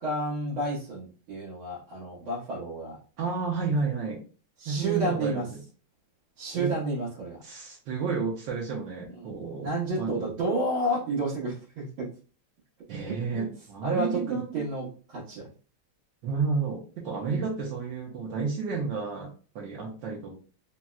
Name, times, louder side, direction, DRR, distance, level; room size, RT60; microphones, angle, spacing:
voice 1, 0.0-3.0 4.6-5.5 6.4-7.4 9.0-9.4 9.6-12.1 13.1-13.5 13.8-15.5 17.3-17.5, right 2 dB, 90° right, -8 dB, 1.9 m, -31 dB
voice 2, 3.2-4.2 4.7-5.6 6.5-6.7 7.4-9.7 10.0-10.1 12.9-14.6 16.2-20.3, right 4 dB, 75° right, -1 dB, 1.3 m, -31 dB
4.0 x 2.1 x 2.3 m, 0.37 s
omnidirectional pair, 2.2 m